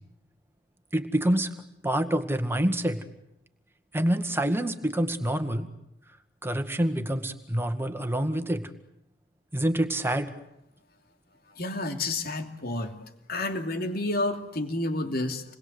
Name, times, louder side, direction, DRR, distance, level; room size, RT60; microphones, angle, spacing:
voice 1, 0.9-1.5 1.8-3.0 3.9-5.7 6.4-8.7 9.5-10.3, right 1 dB, 15° right, 7 dB, 1.9 m, -26 dB
voice 2, 11.6-12.9 13.3-15.5, left 2 dB, 55° left, 6 dB, 2.7 m, -30 dB
28.5 x 21.0 x 8.2 m, 0.84 s
head